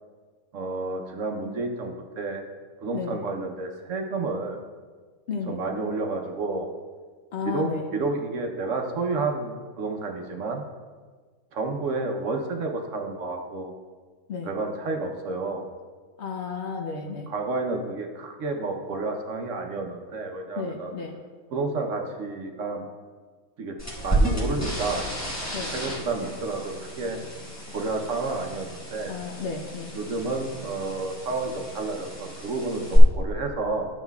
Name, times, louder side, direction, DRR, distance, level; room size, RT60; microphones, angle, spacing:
voice 1, 0.5-2.4 2.8-4.6 5.5-6.7 7.4-10.6 11.5-13.7 14.4-15.7 17.3-20.9 21.5-22.8 23.6-23.7 24.0-25.1 25.7-27.2 27.7-29.2 29.9-33.9, right 3 dB, 65° right, 3 dB, 1.1 m, -30 dB
voice 2, 5.3-5.6 7.3-7.8 14.3-14.5 16.2-17.3 20.5-21.2 25.5-25.7 29.1-29.9, left 5 dB, 55° left, 2 dB, 0.9 m, -32 dB
sound 1, 23.8-33.0, right 1 dB, 10° left, 1.2 m, -32 dB
11.5 x 7.2 x 2.3 m, 1.5 s
omnidirectional pair, 1.5 m